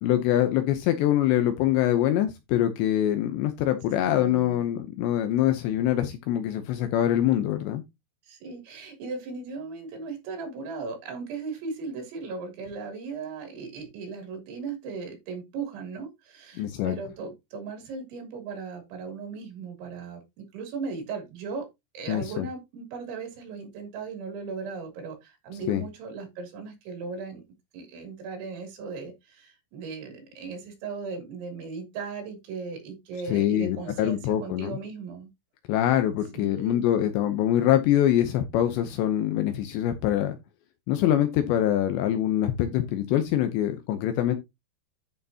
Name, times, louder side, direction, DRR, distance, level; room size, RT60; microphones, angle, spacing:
voice 1, 0.0-7.8 16.6-17.0 22.1-22.5 25.7-25.8 33.3-34.8 35.7-40.4 40.9-44.4, left 12 dB, 80° left, 3.0 m, -24 dB
voice 2, 4.0-4.6 8.3-21.7 22.0-27.4 27.7-35.3 36.3-36.8, right 4 dB, 80° right, 5.4 m, -37 dB
12.5 x 6.5 x 2.8 m
omnidirectional pair, 5.2 m